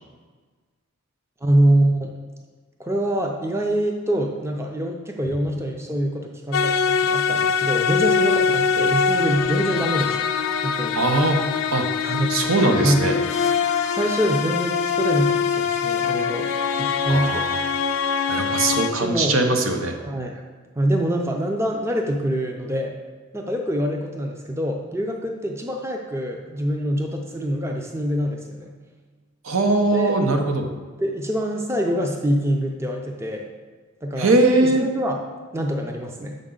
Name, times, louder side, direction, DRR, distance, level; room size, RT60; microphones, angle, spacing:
voice 1, 1.4-2.1 2.8-10.3 10.6-11.0 12.0-12.3 12.8-13.0 14.0-16.5 16.8-17.4 19.0-19.4 20.0-20.4 20.8-23.0 23.3-28.7 29.9-30.2 31.0-33.5 34.0-34.3 34.6-35.2 35.5-36.4, right 1 dB, 15° right, 2 dB, 0.4 m, -25 dB
sound 1, 6.5-18.9, left 6 dB, 90° left, 0.5 m, -23 dB
voice 2, 10.9-11.4 11.7-11.8 12.3-13.2 17.1-17.6 18.3-20.0 29.4-30.7 34.2-34.9, right 2 dB, 85° right, 4 dB, 0.8 m, -20 dB
6.8 x 5.2 x 3.8 m, 1.4 s
head